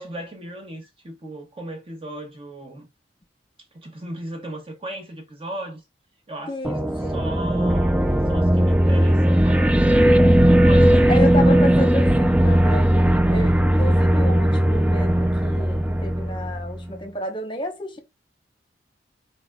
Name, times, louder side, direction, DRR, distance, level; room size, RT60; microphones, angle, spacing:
voice 1, 0.0-2.9 3.7-5.8 6.3-10.2 10.6-11.7, right 1 dB, 30° right, 1.3 m, -36 dB
voice 2, 6.5-7.4 10.5-10.6 11.1-12.9 13.3-18.0, left 1 dB, 25° left, 1.0 m, -31 dB
sound 1, 6.6-16.8, right 1 dB, 5° right, 0.3 m, -18 dB
4.5 x 4.0 x 2.3 m
head